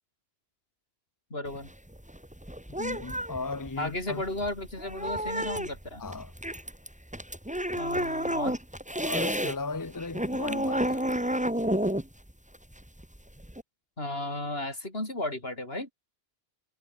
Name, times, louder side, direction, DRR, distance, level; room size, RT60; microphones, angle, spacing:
voice 1, 1.3-1.7 3.8-6.0 7.8-8.6 14.0-15.9, left 1 dB, 70° left, 6.2 m, -34 dB
angry cat, 1.5-9.6 9.9-13.6, equal, 5° right, 2.1 m, -31 dB
voice 2, 2.8-4.2 6.0-6.3 9.0-11.0, left 3 dB, 20° left, 0.8 m, -36 dB
omnidirectional pair, 1.1 m